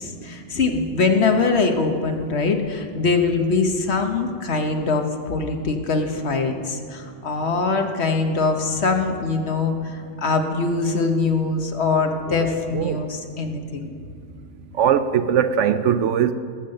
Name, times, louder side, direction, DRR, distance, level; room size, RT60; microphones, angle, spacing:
voice 1, 0.0-13.9, left 4 dB, 60° left, 1.3 m, -23 dB
voice 2, 14.8-16.3, right 8 dB, 70° right, 0.9 m, -20 dB
19.0 x 7.3 x 6.5 m
omnidirectional pair, 1.3 m